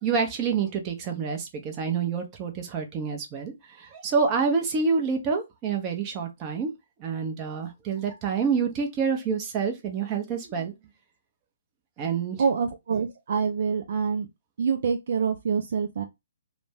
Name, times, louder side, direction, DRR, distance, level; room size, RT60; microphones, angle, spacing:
voice 1, 0.0-6.7 7.0-10.7 12.0-12.4, right 5 dB, 25° right, 0.7 m, -27 dB
voice 2, 12.4-14.3 14.6-16.0, right 6 dB, 55° right, 0.4 m, -26 dB
2.5 x 2.2 x 3.4 m
figure-of-eight pair, 135°, 0 cm